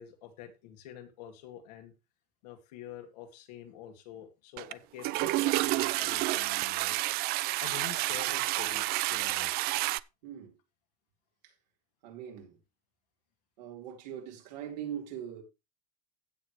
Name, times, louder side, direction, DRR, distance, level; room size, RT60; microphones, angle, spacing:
voice 1, 0.0-1.9 2.4-7.0 7.6-9.5, left 10 dB, 80° left, 2.6 m, -47 dB
Toilet flush, 4.6-4.7 5.0-10.0, right 19 dB, 50° right, 0.4 m, -30 dB
voice 2, 10.2-10.6 11.4-11.5 12.0-12.6 13.6-15.4, right 9 dB, 80° right, 4.0 m, -41 dB
15.5 x 6.4 x 3.2 m
supercardioid pair, 120°, 21 cm